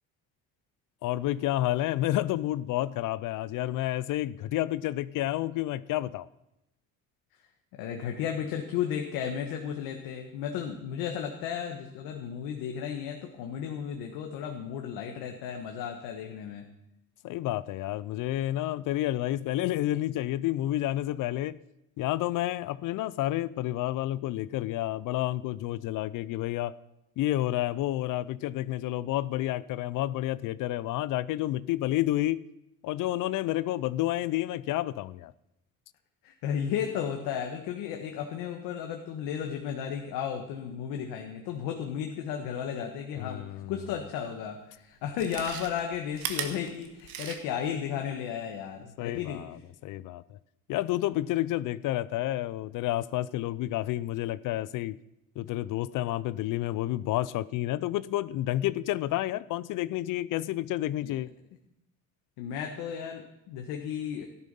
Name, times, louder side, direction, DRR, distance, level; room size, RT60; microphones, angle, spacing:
voice 1, 1.0-6.3 17.2-21.6 22.0-26.7 27.2-32.4 32.8-35.3 43.2-43.7 49.0-50.2 50.7-55.0 55.4-61.3, left 14 dB, 65° left, 0.5 m, -30 dB
voice 2, 7.7-16.7 36.2-49.5 61.0-61.2 62.4-64.3, left 8 dB, 90° left, 1.5 m, -34 dB
Chewing mastication, 44.3-44.4 45.0-47.7 48.1-48.2, right 9 dB, 80° right, 1.7 m, -37 dB
14.0 x 12.0 x 5.4 m
cardioid pair, 125°, 35 cm